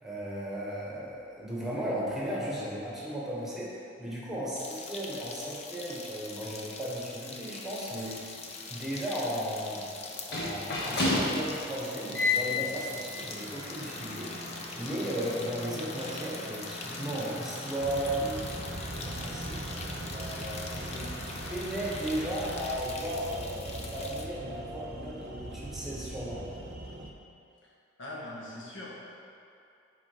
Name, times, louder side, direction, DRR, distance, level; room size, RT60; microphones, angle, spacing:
voice 1, 0.0-8.4 8.7-9.9 10.3-14.3 14.7-18.7 19.0-19.6 20.1-21.1 21.5-26.6, equal, ahead, -6 dB, 1.4 m, -35 dB
sound 1, 4.6-24.3, left 4 dB, 35° left, 0.6 m, -43 dB
sound 2, 7.8-22.7, left 2 dB, 60° left, 1.3 m, -36 dB
sound 3, 17.8-27.1, right 2 dB, 50° right, 0.6 m, -41 dB
voice 2, 28.0-29.0, left 1 dB, 75° left, -4 dB, 1.5 m, -41 dB
6.2 x 4.7 x 5.7 m, 2.6 s
head